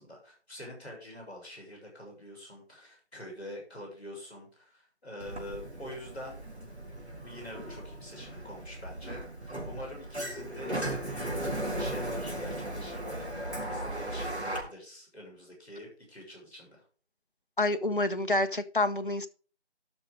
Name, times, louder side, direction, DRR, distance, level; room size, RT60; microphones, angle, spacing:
voice 1, 0.0-6.4 7.1-11.4 11.8-13.3 13.7-16.8, left 1 dB, 10° left, 5.6 m, -45 dB
Sliding door, 5.2-14.6, right 1 dB, 75° right, 4.0 m, -37 dB
voice 2, 17.6-19.3, left 2 dB, 50° left, 0.9 m, -28 dB
12.5 x 6.3 x 4.9 m
figure-of-eight pair, 170°, 34 cm